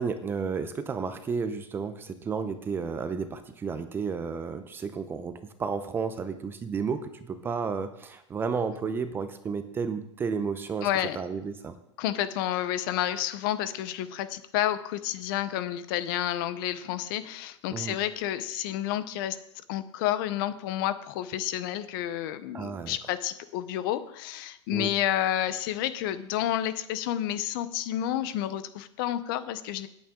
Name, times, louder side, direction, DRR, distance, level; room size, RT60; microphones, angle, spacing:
voice 1, 0.0-10.9 11.2-11.8 17.7-18.0 22.5-23.0 24.7-24.9, right 5 dB, 15° right, 10 dB, 0.6 m, -32 dB
voice 2, 10.8-11.2 12.0-19.4 19.7-29.9, left 12 dB, 45° left, 13 dB, 0.8 m, -30 dB
18.0 x 8.6 x 3.8 m, 0.79 s
supercardioid pair, 150°, 16 cm